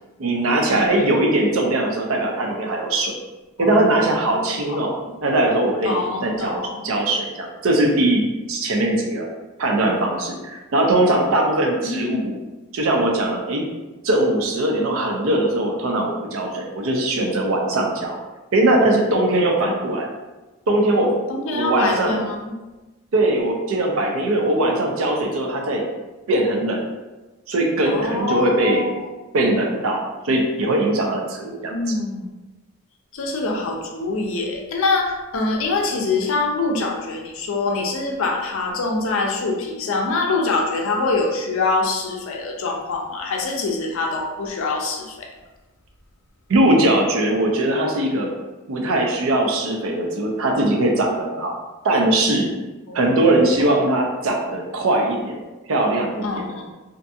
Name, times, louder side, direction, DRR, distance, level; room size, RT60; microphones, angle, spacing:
voice 1, 0.2-3.1 3.6-4.9 5.2-9.3 9.6-12.3 12.7-13.6 14.0-18.2 18.5-20.1 20.7-21.1 21.5-22.3 23.1-25.8 26.3-26.8 27.5-28.9 29.3-31.7 46.5-48.3 48.7-51.5 51.8-52.5 52.9-55.4 55.7-56.4, right 1 dB, 70° right, 1 dB, 0.5 m, -20 dB
voice 2, 3.6-4.4 4.7-4.8 5.8-6.9 11.8-12.3 19.6-19.8 21.3-22.4 27.9-29.1 31.7-32.3 33.1-45.3 52.9-53.2 56.2-56.6, left 3 dB, 65° left, 1 dB, 0.4 m, -24 dB
2.5 x 2.3 x 2.6 m, 1.1 s
head